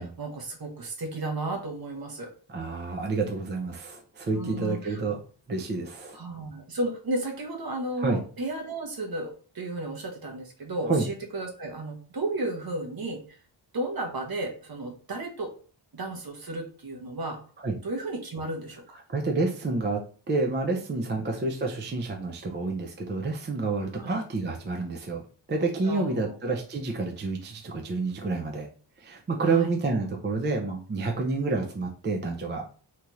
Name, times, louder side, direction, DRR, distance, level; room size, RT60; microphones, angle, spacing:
voice 1, 0.2-2.3 4.3-5.0 6.1-13.2 13.7-15.5 15.9-17.4 17.8-19.0 23.9-24.2 25.8-26.3 29.5-29.7, right 2 dB, 50° right, 3 dB, 0.9 m, -33 dB
voice 2, 2.5-5.2 5.5-6.2 8.0-8.2 10.9-11.0 17.6-17.7 19.1-20.0 20.3-25.2 25.5-28.7 29.0-32.6, right 3 dB, 25° right, 1 dB, 0.4 m, -29 dB
2.9 x 2.4 x 3.0 m, 0.40 s
wide cardioid pair, 95°, 48 cm